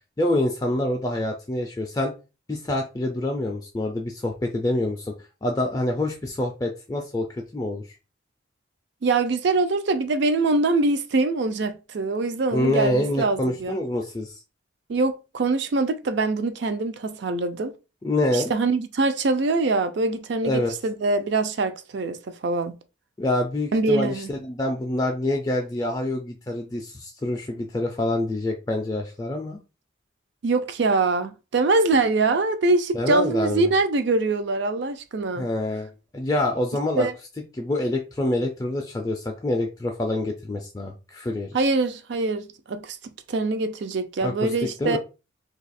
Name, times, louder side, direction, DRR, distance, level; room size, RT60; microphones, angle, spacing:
voice 1, 0.2-2.1 2.5-5.1 5.4-7.8 12.5-14.4 18.0-18.5 20.4-20.7 23.2-29.6 32.9-33.7 35.4-37.1 37.6-41.6 44.2-44.5 44.8-45.0, left 1 dB, 20° left, 0.3 m, -26 dB
voice 2, 9.0-13.8 14.9-17.7 18.3-22.2 22.4-22.8 23.7-24.3 30.4-35.5 37.0-37.1 41.5-43.0 43.3-45.0, right 3 dB, 60° right, 0.4 m, -23 dB
2.7 x 2.3 x 4.1 m
head